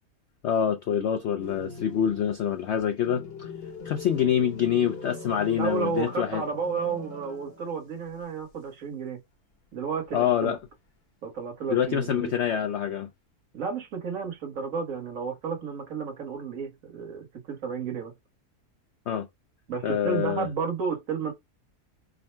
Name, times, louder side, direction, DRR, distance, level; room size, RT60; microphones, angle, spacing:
voice 1, 0.4-3.5 3.8-6.4 10.1-10.6 11.7-13.1 19.1-19.3 19.8-20.5, left 9 dB, 80° left, 0.6 m, -26 dB
sound 1, 1.4-7.9 8.2-8.3 10.0-10.7 11.7-12.4, left 3 dB, 45° left, 1.0 m, -42 dB
voice 2, 5.5-9.2 9.7-10.6 11.2-12.3 13.5-18.1 19.7-21.3, right 5 dB, 55° right, 1.6 m, -32 dB
3.7 x 2.1 x 4.3 m
omnidirectional pair, 1.7 m